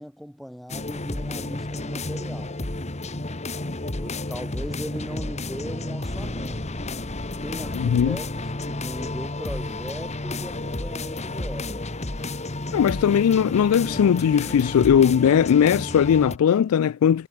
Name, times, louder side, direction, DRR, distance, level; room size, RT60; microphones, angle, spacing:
voice 1, 0.0-2.6 3.7-6.8 7.4-8.3 8.7-11.9, equal, ahead, 1.7 m, -38 dB
sound 1, 0.7-16.4, left 2 dB, 30° left, 1.9 m, -31 dB
voice 2, 7.7-8.2 12.7-17.3, left 8 dB, 90° left, 0.3 m, -19 dB
head